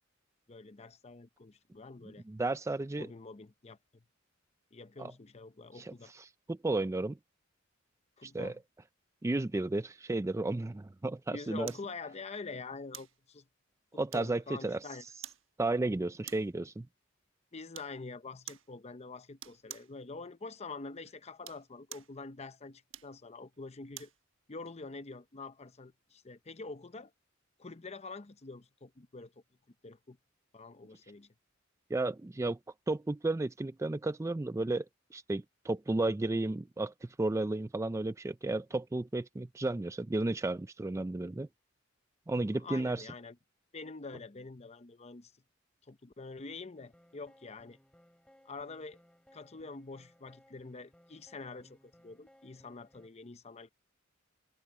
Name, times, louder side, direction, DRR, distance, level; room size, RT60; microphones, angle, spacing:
voice 1, 0.5-2.2 3.0-4.0 4.7-6.1 8.2-8.6 11.3-13.5 13.9-15.0 17.5-24.1 24.5-27.1 27.6-29.3 29.8-30.2 30.5-31.3 42.5-43.4 43.7-45.3 45.9-47.8 48.4-49.0 49.3-53.7, left 3 dB, 35° left, 0.8 m, -46 dB
voice 2, 2.3-3.1 5.0-5.1 5.8-7.2 8.2-8.5 9.2-11.7 14.0-14.8 15.6-16.9 31.9-32.6 32.9-34.9 35.1-41.5 42.3-43.0, right 2 dB, 15° right, 0.4 m, -33 dB
sound 1, 11.7-11.9 12.9-13.2 14.1-14.5 15.2-15.5 16.2-16.6 17.7-18.0 18.5-18.7 19.4-19.9 21.3-22.2 22.9-24.2 24.7-24.8, right 12 dB, 70° right, 1.2 m, -48 dB
sound 2, 46.7-53.1, equal, 5° left, 3.8 m, -63 dB
head